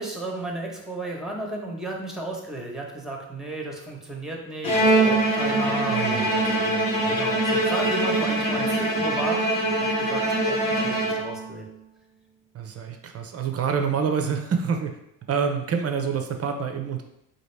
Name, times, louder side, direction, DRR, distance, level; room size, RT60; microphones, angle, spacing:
voice 1, 0.0-9.4 9.8-11.6, right 2 dB, ahead, 0 dB, 0.9 m, -34 dB
Bowed string instrument, 4.6-11.6, right 1 dB, 60° left, 1.3 m, -23 dB
voice 2, 5.9-7.2 12.5-15.0 15.3-17.0, right 6 dB, 30° right, 4 dB, 0.6 m, -27 dB
4.0 x 2.6 x 3.2 m, 0.81 s
hypercardioid pair, 65°, 49 cm